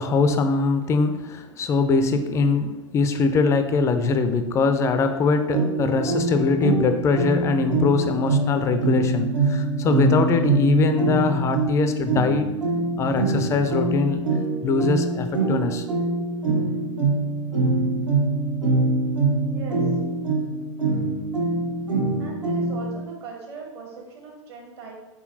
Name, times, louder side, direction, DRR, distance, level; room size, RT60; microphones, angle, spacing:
voice 1, 0.0-12.5 13.0-14.2 14.6-15.8 16.5-16.6, left 4 dB, 20° left, 8 dB, 0.3 m, -22 dB
sound 1, 5.5-23.0, right 3 dB, 80° right, 1.1 m, -24 dB
voice 2, 19.4-19.8 22.2-25.0, right 5 dB, 50° right, 0 dB, 1.1 m, -39 dB
4.0 x 3.8 x 2.6 m, 1.0 s
figure-of-eight pair, 95°, 16 cm